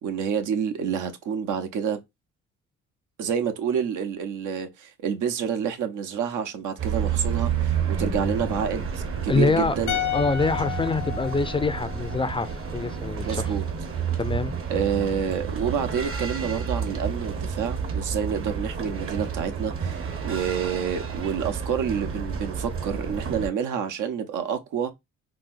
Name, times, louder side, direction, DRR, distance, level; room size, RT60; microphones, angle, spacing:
voice 1, 0.0-2.0 3.2-10.0 13.2-13.6 14.7-24.9, right 7 dB, 85° right, 0.8 m, -28 dB
sound 1, 6.8-23.5, right 6 dB, 45° right, 0.8 m, -30 dB
voice 2, 9.3-9.8 10.1-13.5 14.2-14.5, left 4 dB, 20° left, 0.4 m, -25 dB
sound 2, 9.9-13.1 13.3-13.5, left 12 dB, 85° left, 0.5 m, -33 dB
4.0 x 2.1 x 2.5 m
cardioid pair, 90°, 30 cm